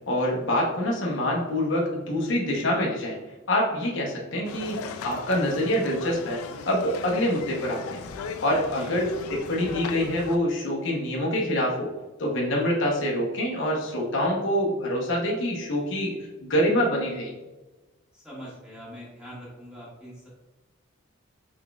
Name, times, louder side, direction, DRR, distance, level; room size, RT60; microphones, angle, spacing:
voice 1, 0.1-3.2 3.5-6.4 6.7-8.0 8.4-11.9 12.2-17.3, equal, 60° left, -2 dB, 0.8 m, -26 dB
sound 1, 4.4-10.4, left 5 dB, 85° left, 0.3 m, -37 dB
voice 2, 18.1-20.3, equal, 5° right, -8 dB, 1.5 m, -42 dB
4.4 x 3.9 x 2.3 m, 1.1 s
head